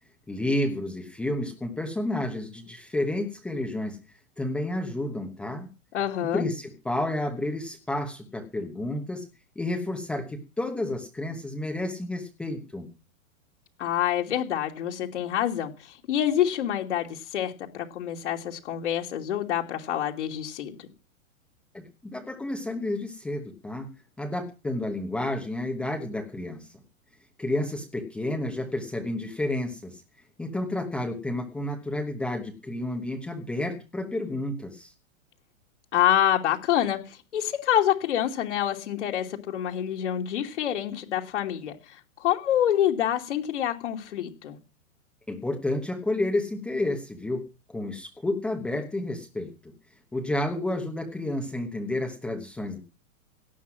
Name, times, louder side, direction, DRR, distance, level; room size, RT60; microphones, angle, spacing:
voice 1, 0.3-4.0 4.4-5.7 6.2-9.2 9.6-12.9 21.7-23.9 24.2-26.7 27.4-30.0 30.4-34.9 45.3-47.4 47.7-49.7 50.1-52.8, left 1 dB, 5° left, 3 dB, 1.0 m, -30 dB
voice 2, 5.9-6.4 13.8-20.9 35.9-44.6, left 10 dB, 60° left, 2 dB, 2.8 m, -27 dB
18.0 x 11.5 x 6.0 m, 0.32 s
hypercardioid pair, 175°, 41 cm